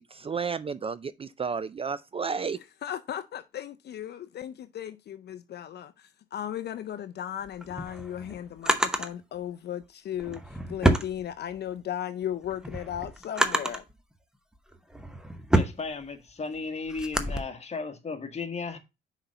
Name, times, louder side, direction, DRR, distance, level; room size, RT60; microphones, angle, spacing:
voice 1, 0.0-2.6, right 5 dB, 30° right, 0.4 m, -32 dB
voice 2, 2.5-13.8, left 10 dB, 55° left, 0.5 m, -36 dB
Drawer open or close, 7.5-9.1 10.1-11.8 12.2-13.9 14.6-17.4, right 1 dB, 5° right, 0.9 m, -28 dB
voice 3, 15.5-18.8, left 4 dB, 35° left, 1.4 m, -35 dB
6.1 x 4.1 x 5.4 m
cardioid pair, 90°, 20 cm